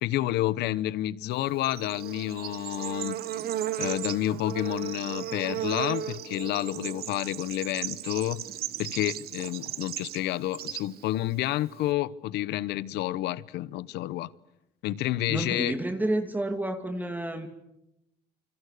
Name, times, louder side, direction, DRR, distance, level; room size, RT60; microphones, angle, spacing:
voice 1, 0.0-3.2 3.8-8.4 8.8-14.3 14.8-15.7, left 14 dB, 85° left, 0.9 m, -29 dB
Bird / Insect, 1.3-11.9, right 11 dB, 65° right, 1.3 m, -36 dB
voice 2, 15.3-17.5, right 1 dB, 10° right, 2.7 m, -30 dB
28.5 x 25.5 x 6.7 m
cardioid pair, 110°, 17 cm